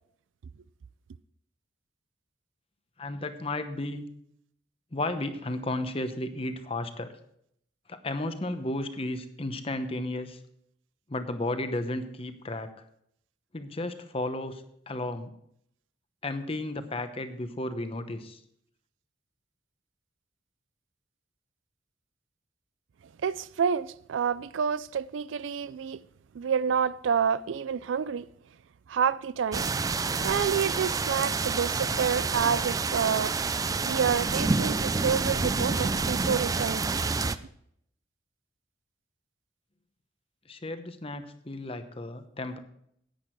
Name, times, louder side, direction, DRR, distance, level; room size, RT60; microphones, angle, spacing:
voice 1, 3.0-4.1 4.9-7.1 7.9-10.4 11.1-12.7 13.5-15.3 16.2-18.4 40.5-42.6, left 2 dB, 30° left, 0.9 m, -33 dB
voice 2, 23.2-26.0 26.3-28.3 28.9-29.7 30.2-33.4 33.8-37.0, right 7 dB, 85° right, 0.4 m, -28 dB
sound 1, 29.5-37.4, right 4 dB, 20° right, 0.3 m, -28 dB
10.5 x 9.7 x 4.6 m
head